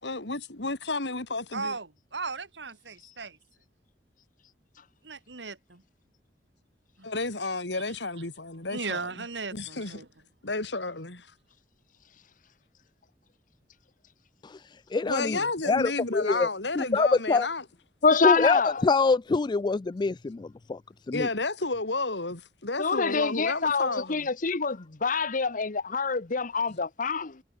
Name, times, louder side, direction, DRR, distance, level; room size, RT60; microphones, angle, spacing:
voice 1, 0.0-1.8 7.0-9.2 9.5-10.1 10.4-11.3 15.1-17.6 21.1-24.3, left 3 dB, 80° left, 3.5 m, -31 dB
voice 2, 1.5-3.4 5.0-5.8 7.0-7.1 8.7-10.0, right 4 dB, 90° right, 2.8 m, -36 dB
voice 3, 14.9-15.4 15.7-16.5 16.8-17.5 18.2-20.8 21.1-21.3, left 4 dB, 25° left, 0.3 m, -25 dB
voice 4, 18.0-18.8 22.8-27.4, left 4 dB, 50° left, 1.0 m, -26 dB
head